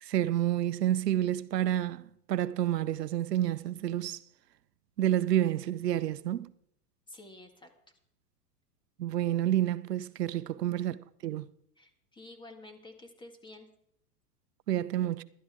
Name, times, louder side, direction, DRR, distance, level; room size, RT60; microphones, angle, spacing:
voice 1, 0.0-4.2 5.0-6.5 9.0-11.5 14.7-15.2, right 12 dB, 85° right, 0.7 m, -29 dB
voice 2, 7.1-7.7 10.5-10.8 11.8-13.7, left 2 dB, 10° left, 1.7 m, -50 dB
16.0 x 12.0 x 3.5 m
hypercardioid pair, 110°, 47 cm